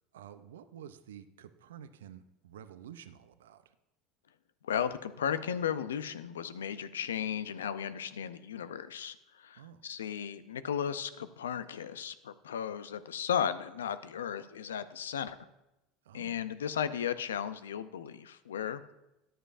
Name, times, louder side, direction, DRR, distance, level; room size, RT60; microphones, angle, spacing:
voice 1, 0.1-3.7 9.6-9.8 16.0-16.5, right 9 dB, 80° right, 12 dB, 0.5 m, -50 dB
voice 2, 4.6-15.4 16.1-18.9, left 8 dB, 85° left, 13 dB, 0.5 m, -35 dB
13.5 x 10.0 x 2.5 m, 0.92 s
hypercardioid pair, 80°, 0 cm